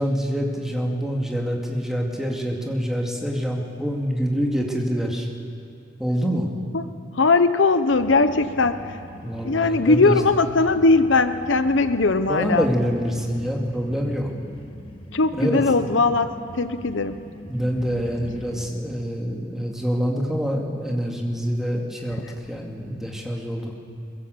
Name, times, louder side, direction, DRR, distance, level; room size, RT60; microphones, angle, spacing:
voice 1, 0.0-5.3 6.0-6.5 9.2-10.2 12.3-14.3 15.3-15.6 17.5-22.2 22.5-23.8, equal, ahead, -1 dB, 2.2 m, -26 dB
voice 2, 7.1-9.0 9.4-12.7 15.1-17.2 22.3-22.4, left 3 dB, 70° left, 11 dB, 0.8 m, -20 dB
sound 1, 7.9-18.7, left 1 dB, 25° left, 1.6 m, -41 dB
22.5 x 22.0 x 7.9 m, 2.4 s
head